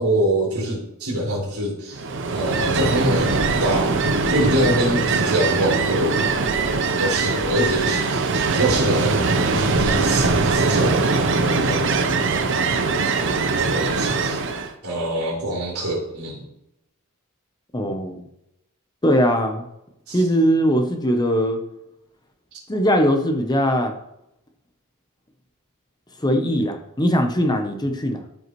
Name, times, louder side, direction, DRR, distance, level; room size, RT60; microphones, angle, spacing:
voice 1, 0.0-2.0 2.3-6.3 6.8-12.0 13.5-14.4 14.8-16.4 20.1-20.2, right 1 dB, 80° right, -4 dB, 3.7 m, -25 dB
Ocean, 1.9-14.7, right 3 dB, 55° right, 0.7 m, -21 dB
voice 2, 17.7-18.3 19.0-19.6 20.1-21.6 22.7-23.9 26.2-28.2, equal, 20° left, 5 dB, 0.8 m, -20 dB
13.5 x 5.5 x 3.1 m, 0.84 s
head